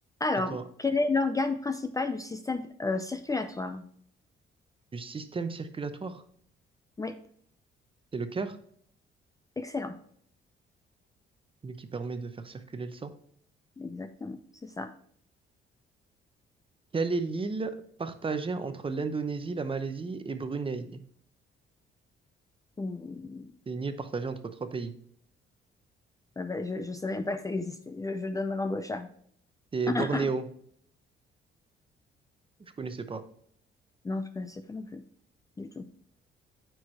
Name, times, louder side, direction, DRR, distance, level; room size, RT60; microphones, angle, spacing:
voice 1, 0.2-3.8 7.0-7.2 9.6-10.0 13.8-14.9 22.8-23.5 26.4-29.1 29.9-30.3 34.0-35.0 35.6-35.8, left 3 dB, 15° left, 9 dB, 0.4 m, -32 dB
voice 2, 4.9-6.2 8.1-8.6 11.6-13.1 16.9-21.0 23.7-24.9 29.7-30.5 32.8-33.2, right 4 dB, 25° right, 9 dB, 0.7 m, -33 dB
8.5 x 4.6 x 3.2 m, 0.64 s
cardioid pair, 90°, 20 cm